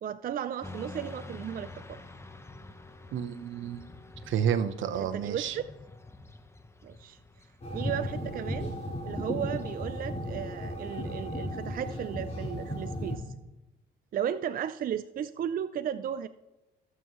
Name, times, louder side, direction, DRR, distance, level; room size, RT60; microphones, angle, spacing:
voice 1, 0.0-2.0 5.0-5.7 6.8-7.2 7.7-8.7 9.1-13.3 14.1-16.3, right 9 dB, 45° right, 12 dB, 0.4 m, -35 dB
Motorcycle / Traffic noise roadway noise, 0.6-10.0, left 2 dB, 15° left, 0.9 m, -48 dB
voice 2, 3.1-3.9 4.3-5.6, right 8 dB, 75° right, 10 dB, 0.9 m, -30 dB
sound 1, 7.6-13.2, left 1 dB, 30° left, 4.1 m, -35 dB
19.0 x 7.1 x 3.1 m, 1.0 s
cardioid pair, 90°, 20 cm